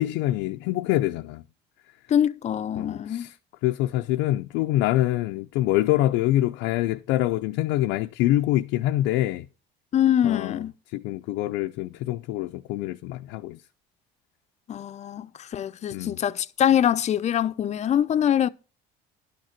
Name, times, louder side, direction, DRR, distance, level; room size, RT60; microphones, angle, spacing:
voice 1, 0.0-1.4 2.8-3.3 3.6-9.5 10.2-10.6 10.9-13.6 15.9-16.2, left 15 dB, 90° left, 0.5 m, -25 dB
voice 2, 2.1-3.3 9.9-10.7 14.7-18.5, left 10 dB, 40° left, 0.6 m, -24 dB
11.5 x 6.5 x 5.8 m
cardioid pair, 115°, 18 cm